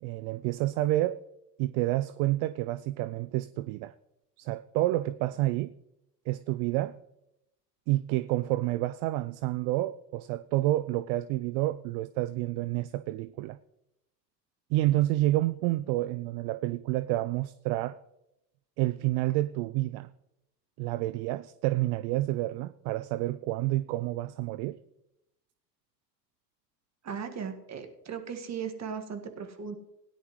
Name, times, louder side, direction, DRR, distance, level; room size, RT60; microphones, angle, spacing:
voice 1, 0.0-1.2 1.6-3.9 4.4-5.7 6.3-7.0 7.9-13.6 14.7-18.0 18.8-20.1 20.8-24.8, right 16 dB, 50° right, 0.5 m, -29 dB
voice 2, 27.0-29.7, right 6 dB, 30° right, 1.8 m, -37 dB
17.0 x 10.5 x 3.1 m
hypercardioid pair, 70°, 50 cm